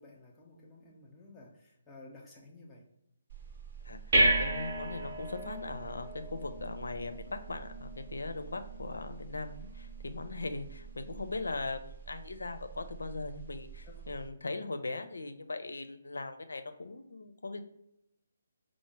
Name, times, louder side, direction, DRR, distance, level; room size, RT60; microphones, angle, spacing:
voice 1, 0.0-2.8 13.8-13.9, left 2 dB, 15° left, -2 dB, 0.6 m, -53 dB
sound 1, 3.3-14.3, right 1 dB, 45° right, 0.7 m, -35 dB
voice 2, 3.8-17.6, left 3 dB, 65° left, 8 dB, 0.4 m, -39 dB
4.8 x 2.0 x 3.2 m, 0.81 s
figure-of-eight pair, 140°, 0 cm